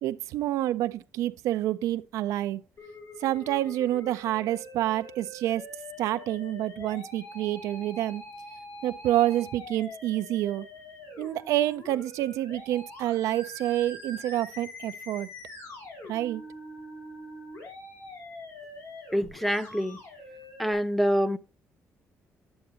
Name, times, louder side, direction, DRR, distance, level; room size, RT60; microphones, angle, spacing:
voice 1, 0.0-2.6 3.2-5.6 6.0-8.2 8.8-10.7 11.2-15.3 16.1-16.4, right 13 dB, 90° right, 0.3 m, -28 dB
Musical instrument, 2.8-20.7, left 1 dB, 80° left, 4.5 m, -44 dB
voice 2, 19.1-20.0 20.6-21.4, equal, ahead, 0.5 m, -26 dB
9.5 x 8.0 x 2.8 m
cardioid pair, 105°, 5 cm